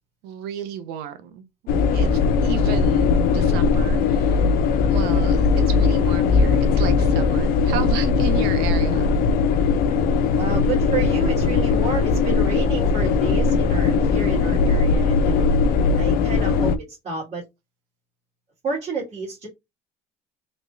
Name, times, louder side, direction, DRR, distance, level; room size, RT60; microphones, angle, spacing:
voice 1, 0.2-1.4 1.9-4.4 4.8-9.1, right 9 dB, 75° right, 0.8 m, -33 dB
sound 1, 1.7-16.8, left 4 dB, 60° left, 0.6 m, -19 dB
voice 2, 10.3-15.5 16.0-17.4 18.6-19.5, right 4 dB, 40° right, 2.2 m, -30 dB
3.4 x 3.1 x 2.6 m
supercardioid pair, 105°, 17 cm